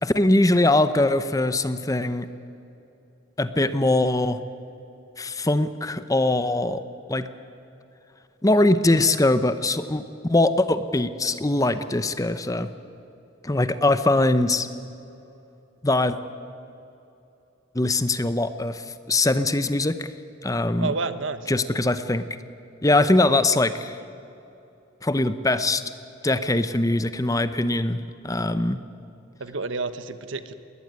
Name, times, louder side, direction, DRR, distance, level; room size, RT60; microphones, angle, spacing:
voice 1, 0.0-2.3 3.4-4.4 5.2-6.8 7.1-7.3 8.4-12.7 13.4-14.7 15.8-16.2 17.7-20.1 20.4-20.9 21.5-22.3 22.8-24.0 25.0-25.8 26.2-28.8, left 2 dB, 15° left, 12 dB, 0.7 m, -22 dB
voice 2, 20.8-21.5 29.4-30.5, right 3 dB, 70° right, 11 dB, 1.2 m, -29 dB
21.0 x 19.0 x 9.6 m, 2.8 s
head